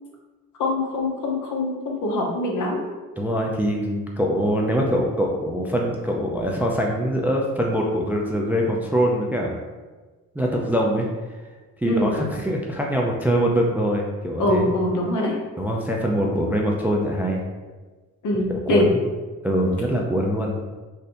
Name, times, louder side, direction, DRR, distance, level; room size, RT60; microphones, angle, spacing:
voice 1, 0.6-2.8 11.8-12.1 14.4-15.3 18.2-18.9, left 1 dB, 55° left, -1 dB, 0.9 m, -23 dB
voice 2, 3.2-9.6 10.4-11.1 11.8-14.7 15.6-17.4 18.5-19.0 19.4-20.5, equal, 5° right, -1 dB, 0.3 m, -23 dB
3.2 x 2.6 x 2.6 m, 1.3 s
supercardioid pair, 60°, 37 cm